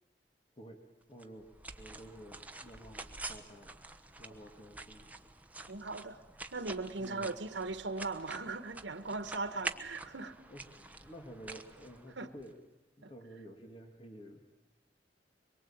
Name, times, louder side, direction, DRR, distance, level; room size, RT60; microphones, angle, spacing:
voice 1, 1.1-1.5 1.8-3.7 4.2-5.1 7.0-7.4 9.9-10.1 10.5-12.6 13.0-14.4, equal, 30° left, 2.3 m, -51 dB
sound 1, 1.2-12.5, right 2 dB, 10° right, 1.1 m, -47 dB
voice 2, 5.7-6.2 6.5-10.4 12.2-12.3 13.0-13.1, right 3 dB, 90° right, 1.4 m, -39 dB
24.0 x 23.0 x 8.8 m
head